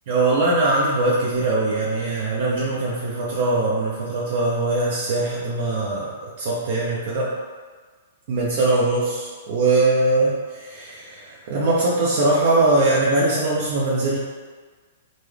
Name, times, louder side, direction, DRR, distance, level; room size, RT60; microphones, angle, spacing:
voice 1, 0.1-7.3 8.3-14.2, right 2 dB, 55° right, -5 dB, 0.6 m, -21 dB
3.8 x 2.0 x 3.2 m, 1.5 s
hypercardioid pair, 130°, 0 cm